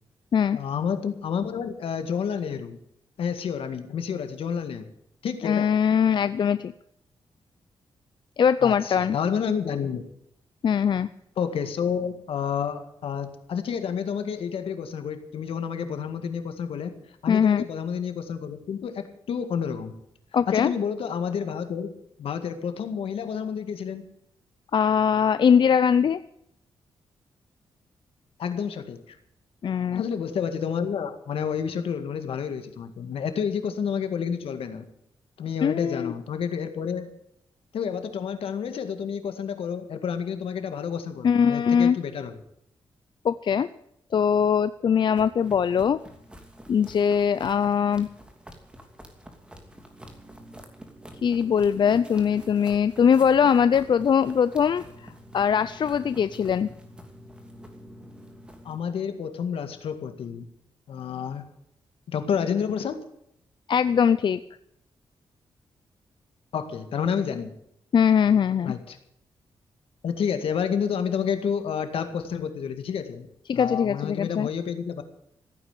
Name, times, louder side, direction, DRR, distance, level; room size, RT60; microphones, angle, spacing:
voice 1, 0.5-2.8 3.2-4.8 5.2-5.7 8.6-10.0 11.4-16.9 17.2-19.9 20.5-21.9 22.2-24.0 28.4-29.2 29.9-34.9 35.4-37.1 37.7-42.3 58.7-60.5 60.9-61.4 62.1-63.0 66.5-67.5 68.6-69.0 70.0-73.3 73.5-75.0, left 7 dB, 85° left, 9 dB, 2.0 m, -29 dB
voice 2, 5.4-6.7 8.4-9.2 10.6-11.1 17.3-17.6 20.3-20.7 24.7-26.2 29.6-30.0 35.6-36.1 41.2-42.0 43.2-43.7 44.1-46.0 46.7-48.1 51.2-56.7 63.7-64.4 67.9-68.7 73.5-74.5, left 7 dB, 55° left, 13 dB, 0.5 m, -21 dB
sound 1, 45.1-58.8, equal, 10° right, 2.9 m, -47 dB
15.5 x 9.3 x 8.3 m, 0.75 s
cardioid pair, 95°, 9 cm